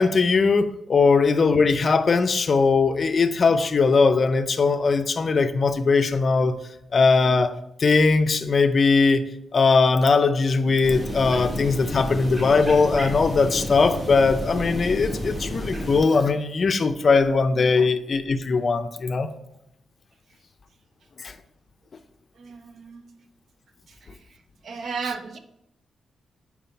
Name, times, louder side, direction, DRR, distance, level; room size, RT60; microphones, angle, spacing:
voice 1, 0.0-6.6 6.9-7.5 7.8-9.2 9.5-19.3 21.2-21.3, left 4 dB, 40° left, 9 dB, 0.4 m, -20 dB
sound 1, 10.8-16.0, left 1 dB, 25° right, 2.6 m, -31 dB
voice 2, 22.4-23.1 24.6-25.4, right 5 dB, 60° right, 8 dB, 0.6 m, -33 dB
5.5 x 4.6 x 4.4 m, 0.81 s
wide cardioid pair, 145°, 0 cm